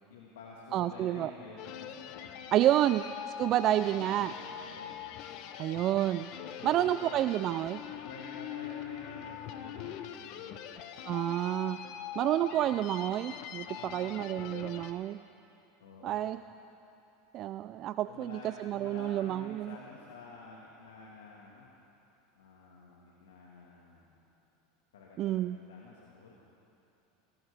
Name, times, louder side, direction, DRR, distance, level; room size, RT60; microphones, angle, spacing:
voice 1, 0.1-2.0 2.3-2.6 3.9-5.0 6.5-7.1 7.8-10.7 11.9-12.0 13.7-14.7 15.8-16.2 18.1-21.7 22.3-24.2 24.9-26.4, left 4 dB, 80° left, -3 dB, 1.7 m, -50 dB
voice 2, 0.7-1.3 2.5-3.1 3.4-4.3 5.6-6.3 6.6-7.8 11.0-11.8 12.2-15.2 16.0-16.4 17.3-19.8 25.2-25.6, right 13 dB, 45° right, 12 dB, 0.3 m, -29 dB
sound 1, 1.6-14.9, left 9 dB, 60° left, 0.9 m, -43 dB
19.0 x 16.5 x 3.4 m, 2.8 s
hypercardioid pair, 95°, 0 cm